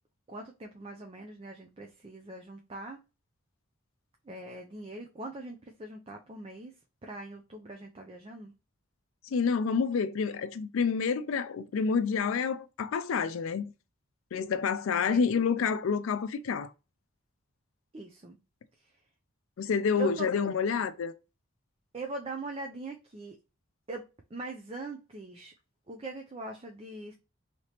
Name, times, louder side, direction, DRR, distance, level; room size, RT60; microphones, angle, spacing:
voice 1, 0.3-3.0 4.2-6.7 7.0-8.5 15.1-15.4 17.9-18.4 18.8-18.9 20.0-20.3 20.5-20.6 21.9-23.4 23.9-24.0 24.3-25.5 25.9-27.2, right 3 dB, 25° right, 0.4 m, -41 dB
voice 2, 9.3-13.6 14.3-16.7 19.6-21.1, left 5 dB, 75° left, 0.4 m, -28 dB
3.3 x 2.8 x 2.8 m
head